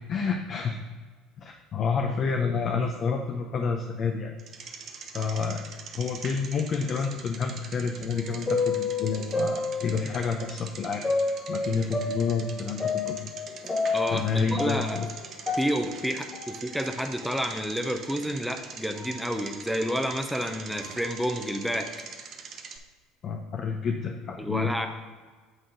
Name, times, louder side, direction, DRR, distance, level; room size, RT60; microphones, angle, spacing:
voice 1, 0.1-0.8 1.4-4.4 5.1-5.7 6.0-11.1 11.5-13.3 14.1-15.1 23.2-24.7, left 5 dB, 50° left, 2 dB, 0.6 m, -29 dB
Bicycle, 4.4-22.8, right 5 dB, 50° right, 0.8 m, -44 dB
sound 1, 8.1-10.3 11.0-14.3 14.6-16.9 17.2-17.3 18.1-18.2 18.9-19.1 19.8-19.9 20.7-21.0, left 3 dB, 25° left, 1.8 m, -30 dB
voice 2, 13.9-15.0 15.6-21.9 24.4-24.9, equal, ahead, 5 dB, 0.8 m, -29 dB
8.1 x 3.7 x 5.0 m, 1.4 s
hypercardioid pair, 70°, 0 cm